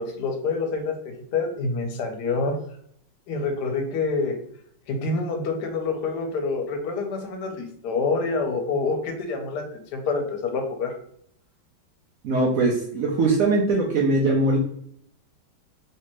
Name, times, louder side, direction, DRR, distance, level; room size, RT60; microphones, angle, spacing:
voice 1, 0.0-2.5 3.3-4.4 4.9-10.9, left 4 dB, 65° left, 4 dB, 1.1 m, -27 dB
voice 2, 12.2-14.6, right 2 dB, 80° right, -2 dB, 0.7 m, -21 dB
3.3 x 2.8 x 2.9 m, 0.65 s
omnidirectional pair, 2.2 m